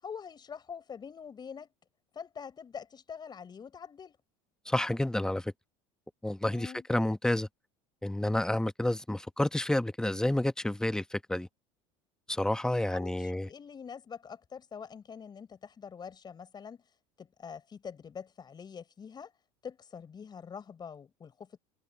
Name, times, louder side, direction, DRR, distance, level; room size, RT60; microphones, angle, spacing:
voice 1, 0.0-1.7 2.1-4.2 6.5-6.9 12.9-16.8 17.2-19.3 19.6-21.6, left 6 dB, 30° left, 6.9 m, -45 dB
voice 2, 4.7-5.5 6.2-7.5 8.0-11.5 12.3-13.5, left 1 dB, 5° left, 1.1 m, -30 dB
supercardioid pair, 95°, 14 cm